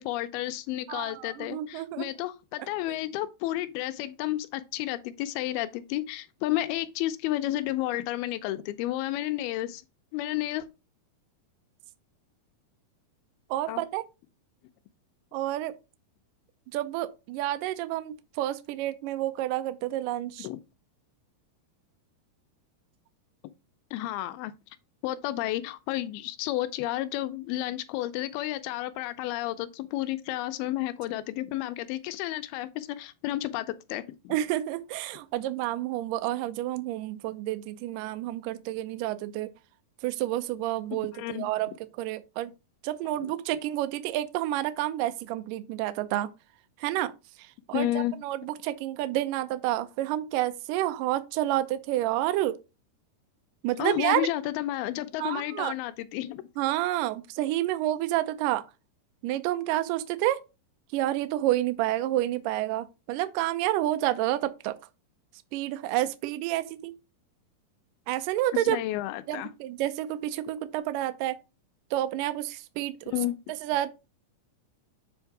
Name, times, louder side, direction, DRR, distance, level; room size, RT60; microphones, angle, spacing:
voice 1, 0.0-9.8 10.1-10.7 13.7-13.8 20.4-20.6 23.9-24.5 25.0-34.4 40.9-41.5 47.7-48.2 53.8-56.5 68.5-69.5 73.1-73.4, left 15 dB, 80° left, 2.4 m, -31 dB
voice 2, 0.9-2.1 2.9-3.0 13.5-14.0 15.3-15.8 16.7-20.5 34.3-39.5 40.0-42.5 42.8-46.3 46.8-47.1 47.4-52.6 53.6-54.3 55.2-55.7 56.6-58.6 59.2-60.4 60.9-64.8 65.5-66.9 68.1-68.8 69.3-71.4 71.9-73.1 73.6-73.9, right 14 dB, 90° right, 1.9 m, -29 dB
7.3 x 3.5 x 4.6 m
omnidirectional pair, 4.6 m